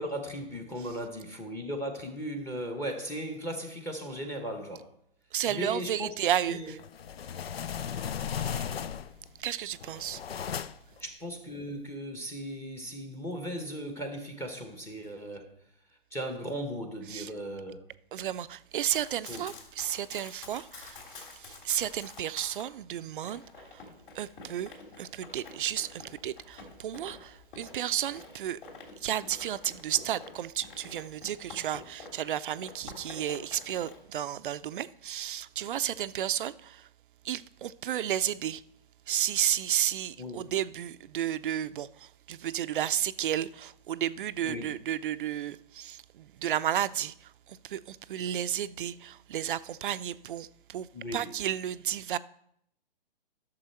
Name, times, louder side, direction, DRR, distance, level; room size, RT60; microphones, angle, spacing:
voice 1, 0.0-4.9 5.5-6.1 6.5-6.7 11.0-15.5 16.1-17.9 19.3-19.4 40.2-40.5 44.4-44.7 50.9-51.3, equal, 10° left, 0.8 m, -37 dB
voice 2, 5.3-6.8 8.3-8.7 9.4-10.2 17.1-17.3 18.1-23.9 24.1-28.6 29.0-36.9 37.2-38.6 39.1-52.2, right 11 dB, 60° right, 0.5 m, -33 dB
sound 1, 6.8-9.3 9.7-11.0, left 8 dB, 85° left, 0.6 m, -36 dB
Run, 18.7-22.7 23.2-32.3 32.6-34.0, left 4 dB, 55° left, 3.3 m, -49 dB
11.5 x 6.7 x 4.3 m
hypercardioid pair, 140°, 29 cm